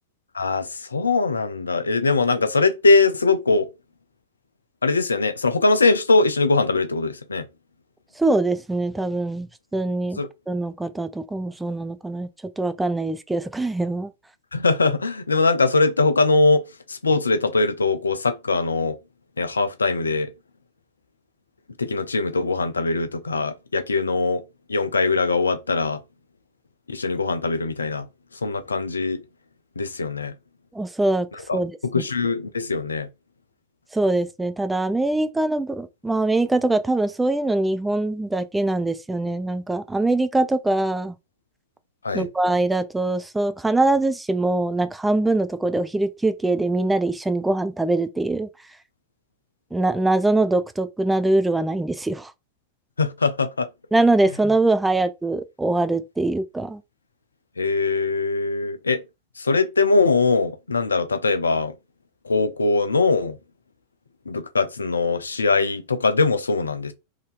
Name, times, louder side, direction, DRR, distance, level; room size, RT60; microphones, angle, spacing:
voice 1, 0.3-3.7 4.8-7.5 10.2-10.3 14.5-19.0 19.4-20.3 21.8-26.0 26.9-28.1 28.4-29.2 29.8-30.3 31.3-33.1 42.0-42.3 53.0-53.7 57.6-59.0 59.4-61.7 62.2-63.4 64.3-66.9, left 3 dB, 75° left, 0.4 m, -21 dB
voice 2, 8.2-10.2 10.5-12.3 12.6-14.1 30.7-31.3 31.5-31.8 33.9-41.2 42.1-48.5 49.7-52.3 53.9-56.8, right 2 dB, 5° right, 0.4 m, -23 dB
3.6 x 2.6 x 2.4 m
figure-of-eight pair, 90°, 0 cm